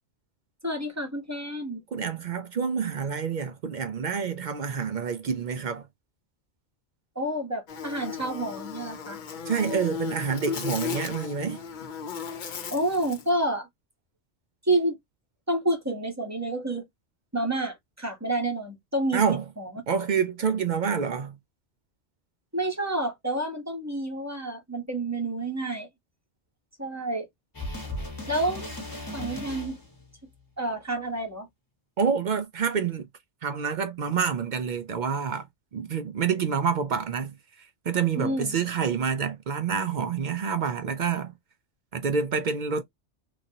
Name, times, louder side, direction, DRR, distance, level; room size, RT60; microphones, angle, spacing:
voice 1, 0.6-1.8 7.1-9.2 12.7-13.7 14.6-15.0 15.5-16.9 17.3-19.2 19.6-19.8 22.5-25.9 26.8-27.3 28.3-28.7 29.1-29.8 30.6-31.5 38.2-38.6, right 1 dB, 15° right, 0.8 m, -29 dB
voice 2, 1.9-5.9 9.5-11.6 19.1-19.4 19.9-21.4 32.0-33.1 33.4-35.5 35.7-41.3 41.9-42.8, right 6 dB, 60° right, 0.5 m, -27 dB
Buzz, 7.7-13.3, left 6 dB, 55° left, 0.6 m, -36 dB
sound 1, 27.5-30.1 31.0-31.1, left 2 dB, 20° left, 1.0 m, -36 dB
3.1 x 2.6 x 2.7 m
omnidirectional pair, 1.2 m